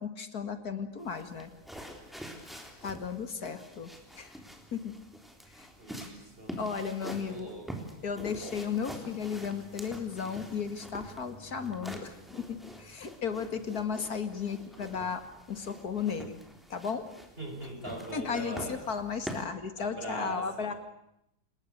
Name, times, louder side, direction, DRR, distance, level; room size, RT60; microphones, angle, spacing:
voice 1, 0.0-1.5 2.8-4.3 4.7-5.0 5.5-5.7 6.6-7.5 8.0-16.4 16.7-17.1 18.1-20.7, left 6 dB, 65° left, 9 dB, 2.6 m, -35 dB
sound 1, 1.0-19.4, equal, ahead, 3.6 m, -46 dB
voice 2, 5.8-6.6 7.3-7.9 17.4-18.8 19.8-20.8, right 1 dB, 35° right, 3 dB, 6.0 m, -41 dB
29.0 x 20.0 x 6.7 m, 0.81 s
omnidirectional pair, 1.8 m